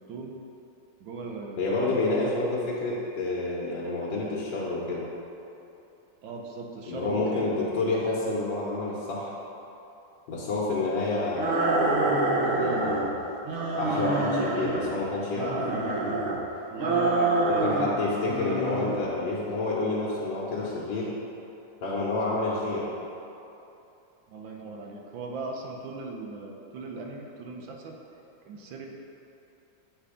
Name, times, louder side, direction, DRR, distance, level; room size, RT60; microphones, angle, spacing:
voice 1, 1.0-2.3 6.2-7.5 16.7-17.8 24.3-28.0 28.5-28.9, right 3 dB, 85° right, 1 dB, 1.4 m, -38 dB
voice 2, 1.6-5.0 6.9-9.3 10.3-12.1 12.4-13.0 13.8-15.6 17.4-21.1 21.8-22.8, left 2 dB, 75° left, -7 dB, 1.6 m, -29 dB
sound 1, 11.4-13.1 13.4-14.9 15.3-16.4 16.8-18.0 18.2-19.0, right 2 dB, 65° right, 0.5 m, -26 dB
7.4 x 3.4 x 4.9 m, 2.9 s
omnidirectional pair, 2.0 m